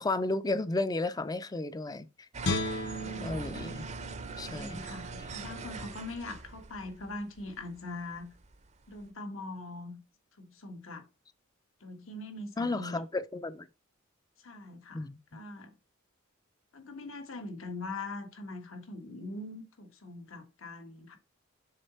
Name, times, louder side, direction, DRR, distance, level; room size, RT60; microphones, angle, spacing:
voice 1, 0.0-2.1 3.2-3.8 4.4-4.8 12.6-13.7 14.9-15.2, left 2 dB, 20° left, 0.4 m, -33 dB
sound 1, 2.3-9.1, right 3 dB, 35° right, 0.6 m, -43 dB
Guitar, 2.4-5.6 6.0-6.2, left 2 dB, 55° left, 1.0 m, -37 dB
voice 2, 3.0-3.5 4.5-8.3 8.9-10.0 10.4-11.1 11.8-13.0 14.4-15.7 16.7-21.2, left 2 dB, 75° left, 1.4 m, -42 dB
6.7 x 3.9 x 4.2 m
head